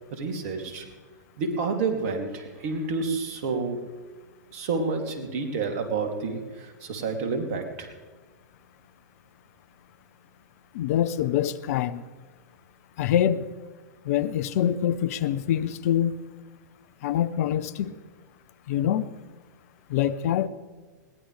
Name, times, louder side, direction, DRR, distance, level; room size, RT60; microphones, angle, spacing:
voice 1, 0.1-0.9 1.4-3.9 4.5-7.9, right 4 dB, 55° right, 3.0 m, -29 dB
voice 2, 10.7-12.0 13.0-13.5 14.0-16.2 17.0-17.9 18.7-19.1 19.9-20.5, left 10 dB, 55° left, 0.8 m, -25 dB
21.5 x 18.5 x 3.4 m
hypercardioid pair, 105°, 10 cm